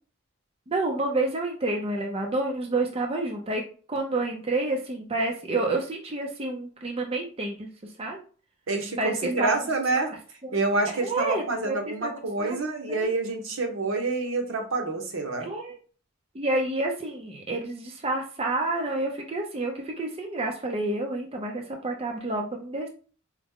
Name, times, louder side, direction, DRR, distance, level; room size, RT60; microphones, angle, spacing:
voice 1, 0.7-3.6 3.9-8.2 9.0-9.5 10.1-10.2 10.4-10.6 10.9-12.6 12.9-13.1 15.4-15.8 16.3-22.9, right 2 dB, 30° right, 2 dB, 0.6 m, -29 dB
voice 2, 8.7-10.1 10.5-15.5, right 3 dB, 75° right, 3 dB, 1.0 m, -27 dB
4.8 x 2.2 x 3.6 m, 0.39 s
head